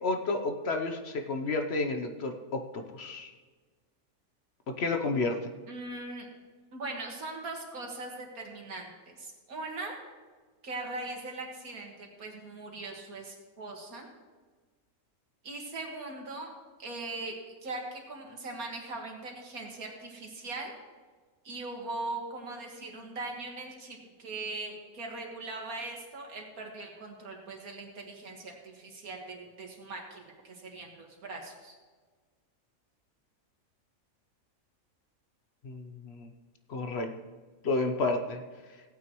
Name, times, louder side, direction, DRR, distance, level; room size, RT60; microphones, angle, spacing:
voice 1, 0.0-3.3 4.7-5.5 35.6-36.3 36.7-37.1 37.6-38.4, left 3 dB, 55° left, 5 dB, 1.0 m, -31 dB
voice 2, 5.7-6.3 6.7-10.1 10.6-14.1 15.4-16.5 16.8-17.4 17.6-20.8 21.4-31.7, right 2 dB, 90° right, 1 dB, 2.2 m, -40 dB
16.5 x 9.1 x 3.1 m, 1.4 s
omnidirectional pair, 1.5 m